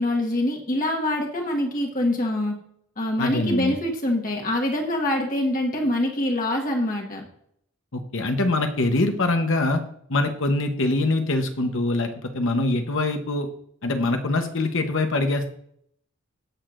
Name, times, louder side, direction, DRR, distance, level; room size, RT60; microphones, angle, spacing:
voice 1, 0.0-2.5 3.0-7.3, left 1 dB, 35° left, 0 dB, 1.4 m, -25 dB
voice 2, 3.2-3.7 7.9-9.8 10.1-13.5 13.8-15.5, left 2 dB, 55° left, 5 dB, 0.9 m, -24 dB
18.0 x 6.5 x 2.5 m, 0.69 s
head